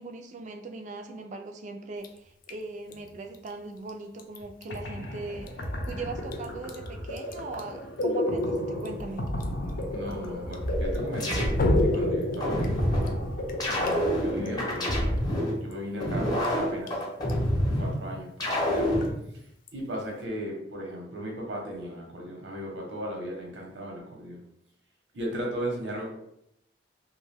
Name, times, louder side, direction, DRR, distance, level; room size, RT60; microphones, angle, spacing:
voice 1, 0.0-9.2 16.3-16.5, right 3 dB, 40° right, 5 dB, 0.3 m, -40 dB
Drip, 2.0-20.3, left 1 dB, 50° left, 0.3 m, -40 dB
sound 1, 4.4-4.5 4.7-15.3, left 1 dB, 90° left, 0.6 m, -32 dB
voice 2, 9.9-13.0 13.6-15.2 15.5-17.0 17.8-18.9 19.7-24.4 25.1-26.1, equal, 85° right, 0 dB, 0.9 m, -36 dB
sound 2, 10.6-11.9 12.4-13.1 13.6-15.5 16.0-17.9 18.4-19.1, equal, 25° left, 0.7 m, -27 dB
2.6 x 2.2 x 3.2 m, 0.76 s
head